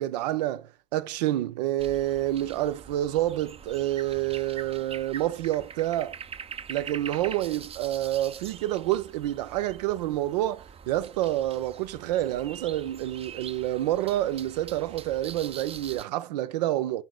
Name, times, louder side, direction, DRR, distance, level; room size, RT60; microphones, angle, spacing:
voice 1, 0.0-6.2 6.7-17.0, right 14 dB, 90° right, 0.5 m, -28 dB
sound 1, 1.8-16.0, right 7 dB, 30° right, 0.5 m, -44 dB
5.6 x 4.0 x 5.9 m
hypercardioid pair, 75°, 20 cm